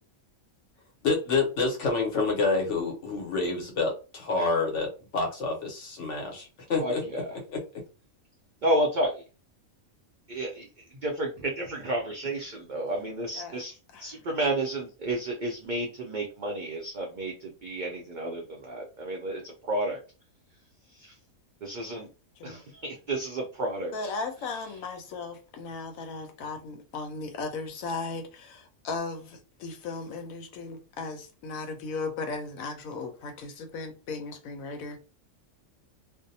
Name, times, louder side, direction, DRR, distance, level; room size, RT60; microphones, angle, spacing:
voice 1, 1.0-7.0 7.5-7.6, left 3 dB, 65° left, 1.1 m, -28 dB
voice 2, 6.8-7.3 8.6-9.1 10.3-10.7 11.0-20.0 21.0-21.1 21.6-22.1 22.4-24.1, right 1 dB, 70° right, 0.4 m, -31 dB
voice 3, 23.9-35.0, left 4 dB, 85° left, 1.1 m, -36 dB
2.6 x 2.0 x 2.6 m
omnidirectional pair, 1.4 m